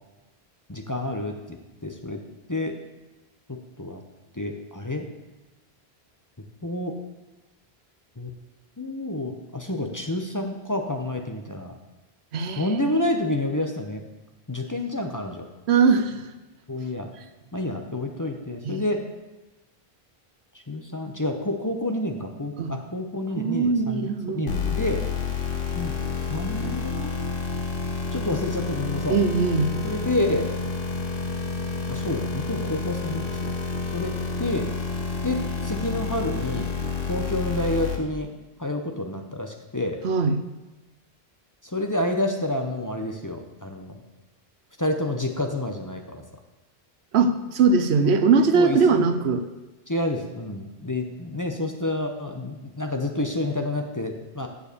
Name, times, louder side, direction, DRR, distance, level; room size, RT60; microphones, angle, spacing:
voice 1, 0.7-2.2 2.5-2.8 3.8-4.0 4.3-5.1 6.6-7.0 8.2-8.3 8.8-11.8 12.6-14.0 14.5-15.5 16.7-17.1 17.5-19.0 20.7-25.0 25.8-26.0 26.3-27.1 28.1-29.2 29.8-30.5 31.9-33.5 33.9-34.7 35.2-36.7 37.1-38.3 38.6-40.0 41.7-44.0 44.8-46.2 48.5-49.1 49.9-54.5, left 1 dB, 20° left, 3 dB, 0.8 m, -29 dB
voice 2, 12.3-12.7 15.7-16.2 18.6-18.8 22.6-22.7 23.4-24.5 29.1-29.8 40.0-40.4 47.1-49.4, right 4 dB, 90° right, 10 dB, 1.0 m, -21 dB
sound 1, 24.5-38.0, left 4 dB, 60° left, 1.4 m, -29 dB
7.6 x 7.0 x 6.8 m, 1.1 s
omnidirectional pair, 1.1 m